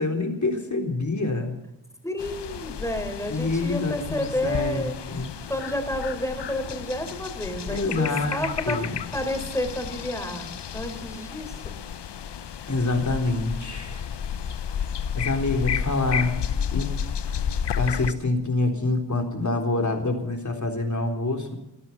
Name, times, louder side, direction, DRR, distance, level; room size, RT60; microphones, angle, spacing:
voice 1, 0.0-1.5 3.3-5.3 7.7-9.0 12.7-14.1 15.1-16.4 16.7-16.9 17.3-17.4 17.8-21.6, left 2 dB, 40° left, 3 dB, 3.8 m, -26 dB
voice 2, 2.0-5.0 5.5-8.8 9.1-11.8, left 1 dB, 5° left, 5 dB, 4.7 m, -30 dB
sound 1, 2.2-18.1, left 8 dB, 65° left, 0.9 m, -32 dB
19.0 x 12.5 x 5.9 m, 0.91 s
cardioid pair, 45°, 45 cm